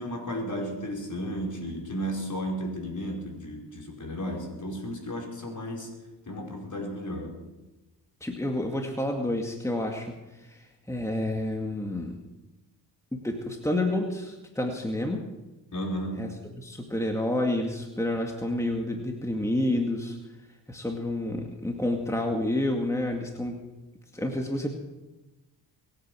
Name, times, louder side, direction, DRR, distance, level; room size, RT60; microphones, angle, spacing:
voice 1, 0.0-5.9 6.3-7.3 15.7-16.3, equal, 45° left, 1 dB, 5.1 m, -33 dB
voice 2, 8.2-12.2 13.1-15.3 16.2-16.3 16.6-20.2 20.7-23.6 24.1-24.7, left 1 dB, 5° left, 2 dB, 2.2 m, -29 dB
23.0 x 9.1 x 6.4 m, 1.1 s
cardioid pair, 55°, 42 cm